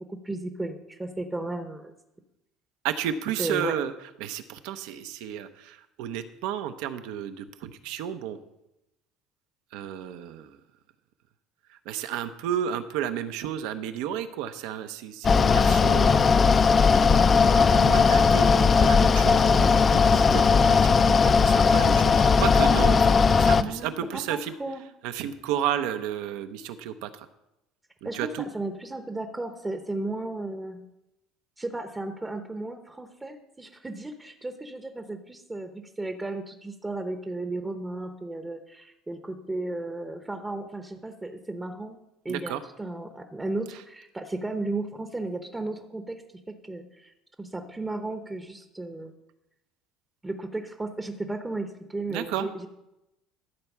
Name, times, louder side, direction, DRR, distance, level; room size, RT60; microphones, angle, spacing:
voice 1, 0.1-1.9 3.4-3.8 23.5-24.8 28.0-30.8 31.6-42.0 42.2-46.2 46.6-47.1 47.4-49.1 50.2-52.7, right 2 dB, 10° right, 6 dB, 0.8 m, -34 dB
voice 2, 2.8-3.9 4.2-8.4 9.7-10.6 11.9-16.7 16.9-24.5 25.0-27.3 28.0-28.4 42.3-42.6 52.1-52.5, right 9 dB, 75° right, 10 dB, 0.8 m, -32 dB
Mechanical fan, 15.2-23.6, left 5 dB, 25° left, 0.4 m, -18 dB
13.0 x 4.6 x 7.2 m, 0.92 s
cardioid pair, 140°, 0 cm